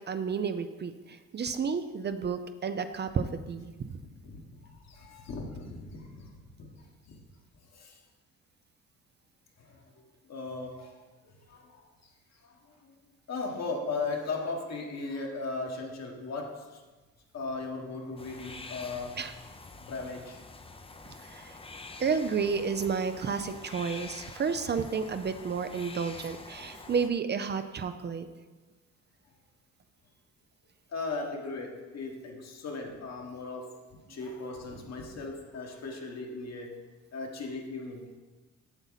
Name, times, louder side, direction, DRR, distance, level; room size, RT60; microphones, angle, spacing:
voice 1, 0.0-3.9 19.2-19.3 21.2-21.6 22.0-28.3, right 5 dB, 35° right, 9 dB, 0.5 m, -31 dB
voice 2, 4.0-6.3 6.6-7.2 7.7-8.0 9.6-9.9 10.3-11.0 11.2-11.9 12.4-12.9 13.3-16.8 17.3-19.2 19.8-20.4 26.5-26.9 30.9-33.8 34.1-36.8 37.1-38.0, left 3 dB, 60° left, 1 dB, 1.5 m, -38 dB
sound 1, 18.2-27.1, left 3 dB, 20° left, 0.6 m, -46 dB
8.0 x 7.0 x 4.0 m, 1.3 s
cardioid pair, 90°, 30 cm